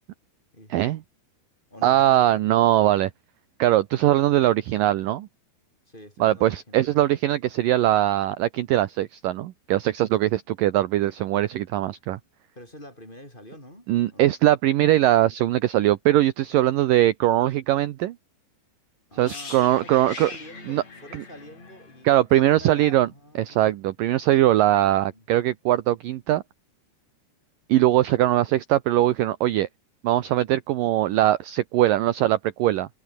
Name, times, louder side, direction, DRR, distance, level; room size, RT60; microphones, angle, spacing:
voice 1, 0.5-0.9 1.7-2.5 5.9-7.0 12.5-14.3 19.1-23.7 25.0-25.2, left 1 dB, 10° left, 7.9 m, -46 dB
voice 2, 1.8-3.1 3.6-5.3 6.2-12.2 13.9-18.2 19.2-20.3 20.7-20.8 22.0-23.1 23.4-26.4 27.7-29.7 30.0-32.9, right 14 dB, 70° right, 2.2 m, -21 dB
sound 1, 19.2-23.1 23.4-23.6, left 4 dB, 40° left, 6.5 m, -42 dB
omnidirectional pair, 4.9 m